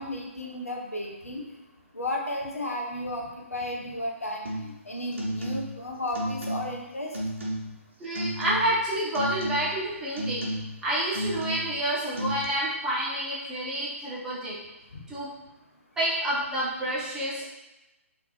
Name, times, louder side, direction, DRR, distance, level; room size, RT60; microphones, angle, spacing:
voice 1, 0.0-1.4 1.9-7.1 14.9-15.0, left 1 dB, 80° left, 0 dB, 0.6 m, -33 dB
sound 1, 4.5-4.8 5.1-5.8 6.1-6.8 7.1-7.8 8.2-8.9 9.1-9.8 10.2-10.8 11.1-11.8 12.2-12.4, right 1 dB, 60° right, 0.7 m, -33 dB
voice 2, 8.0-10.5 10.8-14.6 15.1-15.3 16.0-17.4, right 1 dB, 10° right, -9 dB, 0.8 m, -28 dB
2.9 x 2.5 x 3.0 m, 0.98 s
figure-of-eight pair, 130°, 8 cm